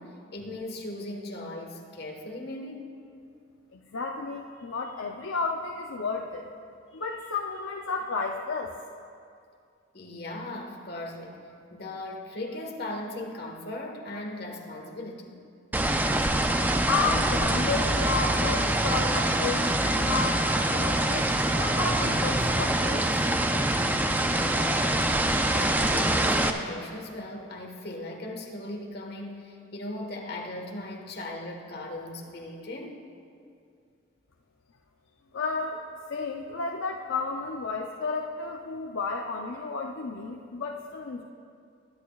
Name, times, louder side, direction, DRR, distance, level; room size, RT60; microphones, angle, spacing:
voice 1, 0.0-3.0 9.9-15.5 24.2-25.1 25.5-33.0 35.2-35.4, left 1 dB, 50° left, 1 dB, 1.4 m, -38 dB
voice 2, 3.7-6.5 6.9-8.7 16.9-23.1 35.3-35.8 36.1-41.2, left 4 dB, 85° left, 1 dB, 0.6 m, -32 dB
sound 1, 15.7-26.5, right 1 dB, 10° right, 0.4 m, -25 dB
22.0 x 10.5 x 2.4 m, 2.4 s
head